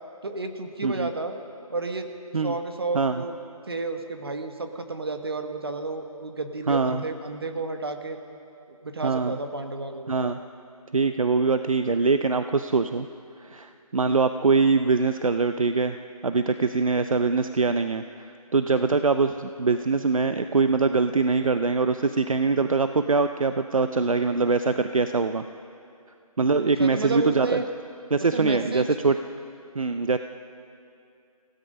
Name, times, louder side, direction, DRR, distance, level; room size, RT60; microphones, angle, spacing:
voice 1, 0.2-1.3 1.7-2.1 2.4-3.3 3.7-8.2 8.8-10.1 26.8-27.7 28.3-28.9, right 3 dB, 40° right, 6 dB, 1.5 m, -31 dB
voice 2, 6.7-7.0 9.0-9.4 10.1-10.4 10.9-13.1 13.4-16.0 16.2-25.4 26.4-27.6 28.1-29.2 29.7-30.2, right 4 dB, 60° right, 9 dB, 0.7 m, -23 dB
29.0 x 16.5 x 5.4 m, 2.5 s
figure-of-eight pair, 175°, 19 cm